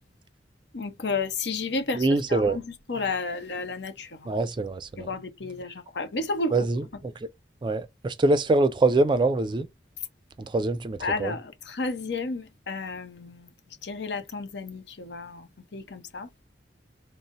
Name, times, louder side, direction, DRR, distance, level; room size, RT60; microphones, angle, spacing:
voice 1, 0.7-4.3 5.0-6.5 11.0-13.5 13.8-16.3, left 3 dB, 70° left, 0.8 m, -32 dB
voice 2, 1.9-2.6 4.3-5.1 6.5-7.3 7.6-9.7 10.4-11.3, right 2 dB, 25° right, 0.3 m, -24 dB
3.9 x 2.0 x 3.8 m
head